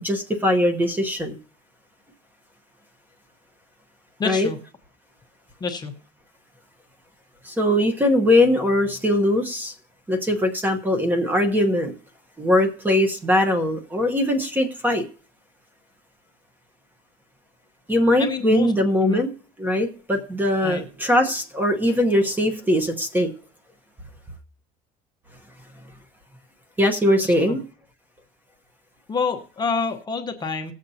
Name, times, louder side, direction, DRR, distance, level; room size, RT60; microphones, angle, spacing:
voice 1, 0.0-1.4 4.2-4.5 7.4-9.7 10.1-11.9 12.4-15.0 17.9-19.3 19.6-23.3 26.8-27.6, left 1 dB, 10° right, 6 dB, 1.0 m, -21 dB
voice 2, 4.2-4.6 5.6-5.9 18.2-18.7 19.0-19.2 20.6-20.8 27.2-27.6 29.1-30.7, left 4 dB, 20° left, 5 dB, 0.9 m, -27 dB
19.5 x 7.2 x 2.7 m, 0.40 s
cardioid pair, 155°, 18 cm